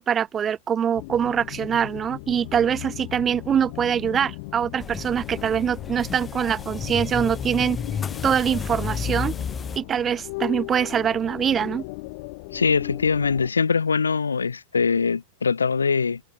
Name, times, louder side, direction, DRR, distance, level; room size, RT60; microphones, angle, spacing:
voice 1, 0.0-7.8 8.2-9.3 9.8-11.8, right 8 dB, 25° right, 0.6 m, -24 dB
sound 1, 0.9-13.5, left 26 dB, 50° left, 2.3 m, -37 dB
sound 2, 4.8-9.8, left 6 dB, 20° left, 2.8 m, -32 dB
voice 2, 12.5-16.2, left 5 dB, 75° left, 0.5 m, -22 dB
figure-of-eight pair, 90°, 0 cm